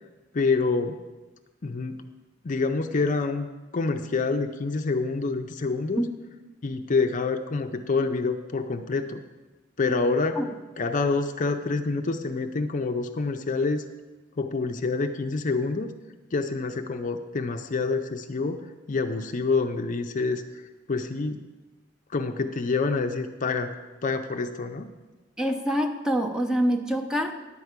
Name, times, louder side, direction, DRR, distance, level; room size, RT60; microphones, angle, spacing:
voice 1, 0.3-1.0 1.6-2.0 2.4-3.5 3.7-6.0 6.6-9.2 9.8-10.4 10.8-13.8 14.4-15.9 16.3-20.4 20.9-21.4 22.1-23.7 24.0-24.9, left 3 dB, 40° left, 6 dB, 0.5 m, -27 dB
voice 2, 25.4-27.3, equal, 5° right, 2 dB, 0.7 m, -25 dB
10.5 x 4.7 x 8.1 m, 1.2 s
head